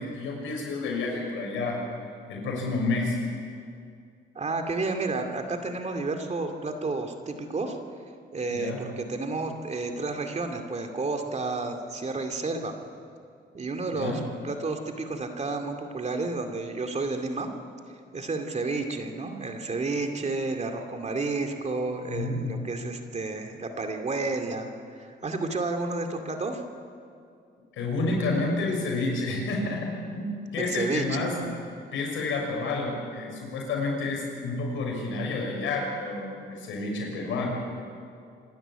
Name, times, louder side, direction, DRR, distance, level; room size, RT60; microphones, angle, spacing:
voice 1, 0.0-1.8 2.3-3.2 8.5-8.8 13.9-14.2 22.1-22.6 27.8-31.5 31.9-37.5, left 3 dB, 85° left, 0 dB, 6.4 m, -29 dB
voice 2, 4.3-7.8 8.3-12.7 13.5-17.5 18.1-26.6 30.6-31.2, right 3 dB, 35° right, 5 dB, 2.5 m, -31 dB
26.0 x 12.0 x 9.0 m, 2.3 s
cardioid pair, 90°, 20 cm